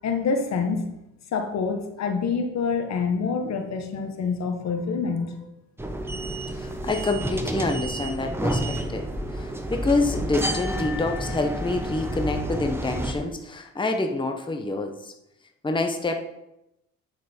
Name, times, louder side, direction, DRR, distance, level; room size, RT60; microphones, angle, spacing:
voice 1, 0.0-0.9 1.3-5.5, left 5 dB, 60° left, 6 dB, 1.3 m, -26 dB
sound 1, 5.8-13.1, right 1 dB, 10° right, 1.1 m, -30 dB
voice 2, 6.5-15.1 15.6-16.1, left 2 dB, 15° left, 5 dB, 0.9 m, -27 dB
9.2 x 6.1 x 4.4 m, 0.87 s
cardioid pair, 90°, 30 cm